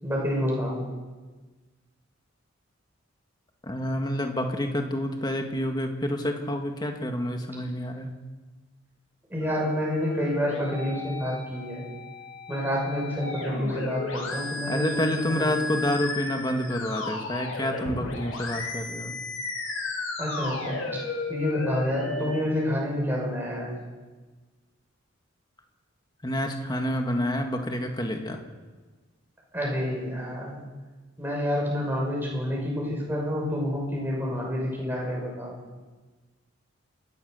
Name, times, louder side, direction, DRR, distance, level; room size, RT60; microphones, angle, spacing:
voice 1, 0.0-0.8 9.3-11.8 12.5-15.5 20.2-20.8 21.3-23.7 29.5-30.6 31.2-35.6, equal, 10° right, -3 dB, 6.2 m, -28 dB
voice 2, 3.6-8.1 14.7-19.2 26.2-28.4, left 1 dB, 20° left, 4 dB, 1.9 m, -28 dB
sound 1, 9.4-22.4, left 2 dB, 90° left, 6.3 m, -34 dB
28.5 x 13.5 x 6.7 m, 1.3 s
head